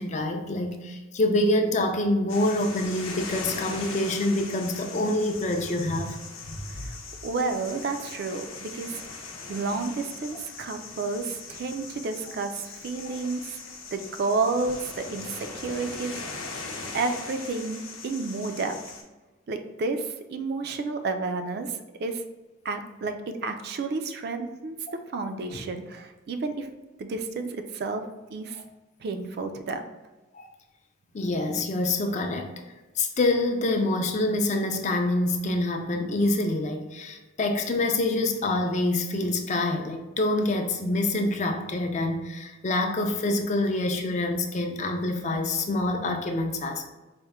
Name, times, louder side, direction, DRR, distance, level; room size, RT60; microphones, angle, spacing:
voice 1, 0.0-6.2 6.5-6.6 28.6-28.7 30.3-30.5 31.1-32.5 33.0-46.8, left 2 dB, 35° left, 4 dB, 0.4 m, -26 dB
sound 1, 2.3-19.0, left 4 dB, 90° left, 0.7 m, -40 dB
voice 2, 7.2-9.0 9.5-13.6 13.9-16.2 16.5-16.6 16.9-18.8 19.5-22.2 22.6-24.8 25.1-26.7 27.0-28.0 28.3-28.6 29.0-29.8, right 3 dB, 55° right, 7 dB, 0.3 m, -31 dB
4.2 x 2.1 x 3.5 m, 1.1 s
head